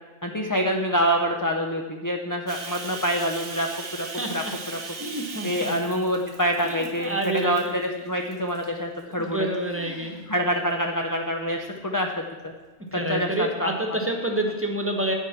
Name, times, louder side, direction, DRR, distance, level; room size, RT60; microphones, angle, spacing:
voice 1, 0.2-4.1 4.3-4.4 5.4-9.5 10.3-12.5 13.1-13.7, equal, 20° left, 2 dB, 0.6 m, -26 dB
Bathtub (filling or washing), 2.5-7.9 8.3-8.7 9.2-10.0, right 4 dB, 55° right, 1.3 m, -39 dB
voice 2, 4.1-4.5 5.0-5.7 6.6-7.8 9.1-10.2 12.8-15.1, right 1 dB, 10° right, 1 dB, 1.3 m, -28 dB
sound 1, 9.6-10.3 10.6-10.7 11.4-11.5 12.2-12.6, right 1 dB, 40° left, 2.1 m, -43 dB
9.2 x 8.1 x 5.9 m, 1.3 s
omnidirectional pair, 1.2 m